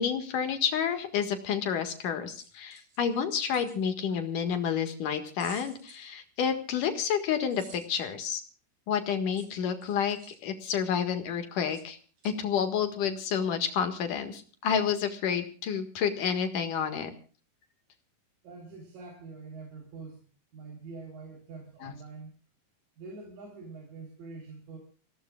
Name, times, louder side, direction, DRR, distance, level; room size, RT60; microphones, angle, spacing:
voice 1, 0.0-8.4 8.9-12.0 12.3-17.1 21.8-21.9, left 7 dB, 75° left, 7 dB, 3.3 m, -29 dB
sound 1, 2.3-3.8 5.4-6.1 7.5-8.1 9.3-10.4 11.7-11.9 12.2-12.3, right 3 dB, 65° right, 5.8 m, -52 dB
voice 2, 18.4-20.2 20.5-22.3 23.0-24.8, right 4 dB, 85° right, 0 dB, 5.5 m, -45 dB
29.0 x 17.0 x 2.4 m, 0.40 s
omnidirectional pair, 3.8 m